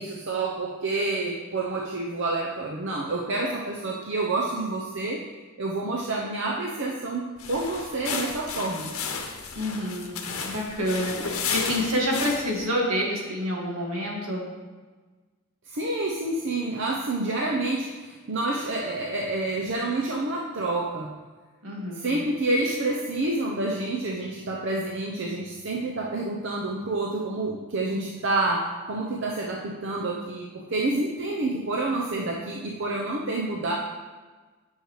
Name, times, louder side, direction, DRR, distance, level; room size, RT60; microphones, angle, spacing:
voice 1, 0.0-5.2 5.6-8.9 15.7-21.1 22.0-33.7, right 2 dB, 55° right, -2 dB, 0.7 m, -28 dB
sound 1, 7.4-12.6, left 5 dB, 80° left, 1.0 m, -33 dB
voice 2, 9.5-14.5 21.6-22.1, equal, 80° right, -2 dB, 1.9 m, -28 dB
9.6 x 6.5 x 3.2 m, 1.3 s
head